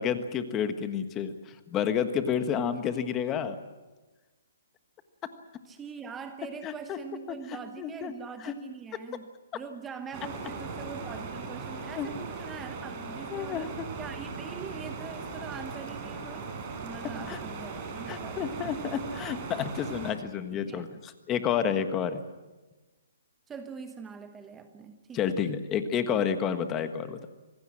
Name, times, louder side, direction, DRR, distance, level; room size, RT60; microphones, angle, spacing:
voice 1, 0.0-3.6 6.6-7.0 7.3-7.4 7.8-8.1 8.4-8.5 12.0-12.1 13.3-13.9 17.3-17.4 18.1-22.2 25.1-27.3, left 8 dB, 15° left, 9 dB, 1.4 m, -30 dB
voice 2, 5.7-16.6 16.8-18.9 20.7-20.9 23.5-25.4, right 6 dB, 10° right, 8 dB, 1.0 m, -43 dB
sound 1, 10.1-20.1, right 4 dB, 25° right, 4.3 m, -38 dB
26.0 x 19.0 x 7.6 m, 1.2 s
hypercardioid pair, 165°, 0 cm